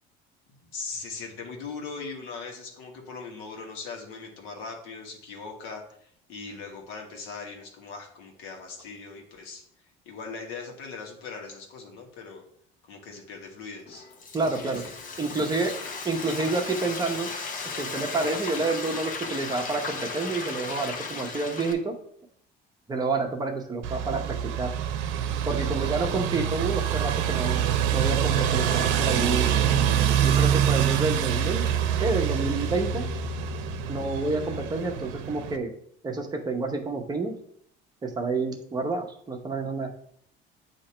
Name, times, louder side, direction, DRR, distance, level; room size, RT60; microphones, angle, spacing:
voice 1, 0.6-9.6 10.0-12.4 12.9-14.0 14.6-15.2 15.7-15.9, left 4 dB, 85° left, 1 dB, 1.5 m, -40 dB
Frying (food), 13.9-21.7, left 4 dB, 45° left, 0.9 m, -36 dB
voice 2, 14.3-14.8 15.2-15.7 16.0-17.3 17.8-21.9 22.9-24.7 25.4-27.6 27.9-29.5 30.2-31.7 32.0-33.1 33.9-35.7 36.0-37.4 38.0-39.9, right 3 dB, 20° right, 2 dB, 0.9 m, -29 dB
sound 1, 23.8-35.6, right 9 dB, 85° right, 0.6 m, -25 dB
8.5 x 2.9 x 4.4 m, 0.66 s
cardioid pair, 135°, 19 cm